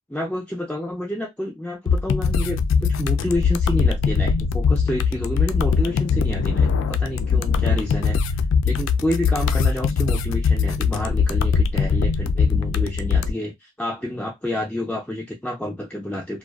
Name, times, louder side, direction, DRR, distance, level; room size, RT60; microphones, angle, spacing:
voice 1, 0.1-16.4, left 1 dB, 5° left, 0.4 m, -29 dB
sound 1, 1.9-13.3, left 5 dB, 85° left, 0.3 m, -21 dB
2.4 x 2.2 x 2.3 m
head